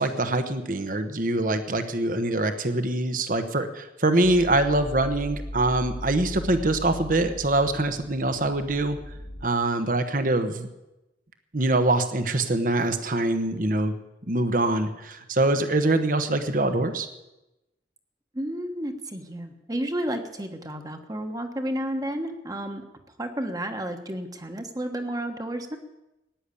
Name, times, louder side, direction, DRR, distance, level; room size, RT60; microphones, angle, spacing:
voice 1, 0.0-9.0 9.4-10.7 11.5-13.9 14.3-17.1, right 2 dB, 50° right, 9 dB, 1.2 m, -24 dB
sound 1, 4.2-9.5, equal, 70° left, 2.5 m, -38 dB
voice 2, 18.3-22.8 23.2-25.8, right 1 dB, 20° right, 5 dB, 1.4 m, -31 dB
16.0 x 10.0 x 8.4 m, 0.95 s
head